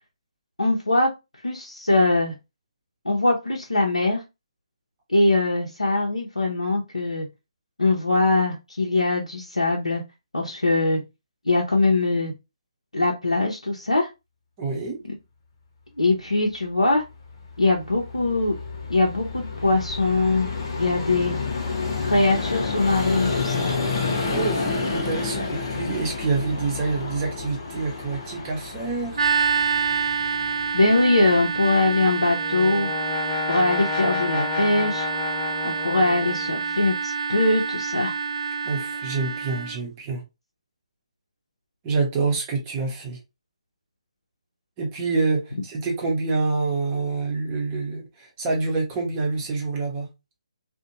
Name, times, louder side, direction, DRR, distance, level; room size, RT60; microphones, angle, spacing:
voice 1, 0.6-1.1 1.4-2.3 3.0-4.2 5.1-7.3 7.8-10.0 10.3-11.0 11.4-12.3 12.9-14.1 16.0-17.0 17.6-18.6 18.9-20.5 20.8-21.4 22.0-23.8 30.7-32.9 33.5-35.1 35.6-38.1, left 2 dB, 90° left, 0.6 m, -22 dB
voice 2, 14.6-15.0 24.3-29.3 38.7-40.2 41.8-43.2 44.8-50.1, right 4 dB, 20° right, 0.7 m, -27 dB
Vehicle, 17.2-31.9, left 4 dB, 40° left, 0.7 m, -30 dB
sound 1, 29.1-39.8, right 6 dB, 65° right, 0.3 m, -27 dB
Brass instrument, 32.0-36.8, left 8 dB, 20° left, 0.3 m, -32 dB
2.5 x 2.1 x 2.8 m
figure-of-eight pair, 145°, 3 cm